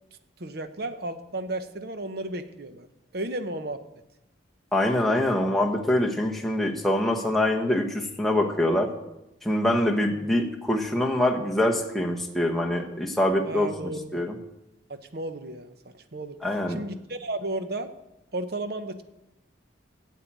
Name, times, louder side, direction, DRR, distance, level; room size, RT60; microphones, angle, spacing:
voice 1, 0.4-2.9 3.1-3.8 13.4-14.2 14.9-15.7 16.1-16.4 16.7-17.9 18.3-19.0, right 2 dB, 55° right, 9 dB, 0.9 m, -33 dB
voice 2, 4.7-8.9 9.4-14.3 16.4-16.8, left 1 dB, ahead, -1 dB, 1.1 m, -24 dB
9.0 x 7.6 x 8.7 m, 0.93 s
head